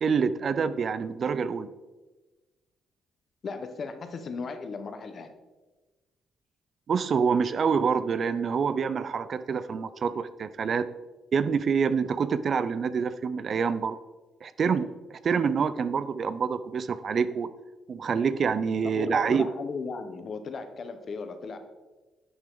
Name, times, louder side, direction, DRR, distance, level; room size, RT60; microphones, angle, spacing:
voice 1, 0.0-1.7 6.9-10.9 11.3-14.0 14.4-17.5 17.9-19.5, right 6 dB, 50° right, 14 dB, 0.5 m, -26 dB
voice 2, 3.4-5.3 18.9-21.6, left 4 dB, 50° left, 8 dB, 1.1 m, -36 dB
11.0 x 7.5 x 3.8 m, 1.2 s
cardioid pair, 90°, 0 cm